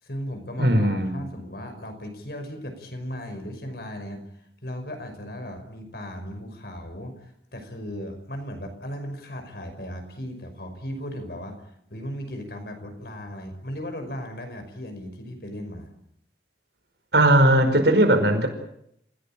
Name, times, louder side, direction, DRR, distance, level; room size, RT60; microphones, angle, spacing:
voice 1, 0.0-15.9, equal, 60° left, 6 dB, 5.6 m, -37 dB
voice 2, 0.6-1.3 17.1-18.5, right 1 dB, 70° right, 7 dB, 5.2 m, -18 dB
28.5 x 17.0 x 8.9 m, 0.76 s
head